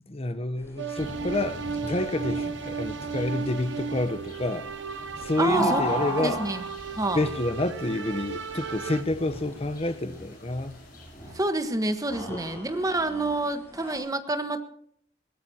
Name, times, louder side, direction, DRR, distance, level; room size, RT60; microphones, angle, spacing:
voice 1, 0.1-4.7 5.2-6.4 7.1-10.8 12.3-12.6, left 2 dB, 35° left, 1.0 m, -29 dB
sound 1, 0.6-14.0, equal, 15° left, 7.5 m, -36 dB
sound 2, 0.8-9.0, right 5 dB, 80° right, 0.9 m, -35 dB
sound 3, 0.9-11.4, equal, 55° left, 5.1 m, -45 dB
voice 2, 5.4-5.8 6.2-6.6 7.0-7.2 11.3-14.6, right 2 dB, 20° right, 1.4 m, -28 dB
21.0 x 17.0 x 2.9 m
head